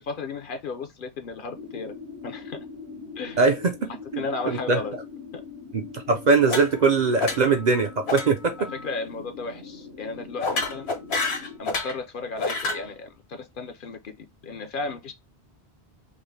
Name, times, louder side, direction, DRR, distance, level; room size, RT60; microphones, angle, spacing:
voice 1, 0.1-1.9 2.2-2.6 3.2-3.4 4.2-5.0 5.3-5.4 7.3-7.4 8.6-10.9 11.6-15.1, left 3 dB, 55° left, 0.7 m, -34 dB
sound 1, 1.5-11.6, left 5 dB, 75° right, 1.7 m, -42 dB
voice 2, 3.4-3.7 4.1-4.8 5.7-5.8 6.1-8.6, right 4 dB, 50° right, 0.6 m, -21 dB
sound 2, 6.4-6.9 7.2-7.6 8.1-8.3 8.6-8.8 10.4-12.0 12.4-12.8, left 3 dB, 75° left, 1.3 m, -28 dB
5.3 x 2.1 x 3.2 m
omnidirectional pair, 1.1 m